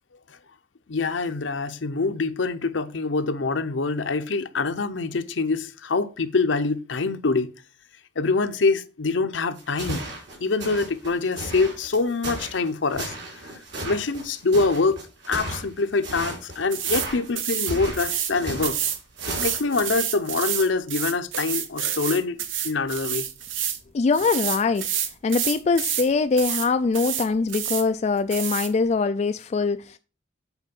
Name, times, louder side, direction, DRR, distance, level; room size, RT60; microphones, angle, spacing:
voice 1, 0.9-7.5 8.2-10.1 10.4-13.1 13.8-15.0 15.3-18.8 19.3-22.4 22.6-23.3, left 3 dB, 75° left, 0.7 m, -25 dB
sound 1, 9.6-19.9, right 1 dB, 65° right, 3.5 m, -35 dB
sound 2, 16.7-17.1 17.4-18.3 18.6-23.8 24.1-26.1 26.4-26.7 26.9-27.8 28.3-28.7, right 9 dB, 90° right, 0.9 m, -28 dB
voice 2, 23.9-30.0, left 4 dB, 35° left, 0.3 m, -23 dB
8.2 x 4.2 x 5.3 m
head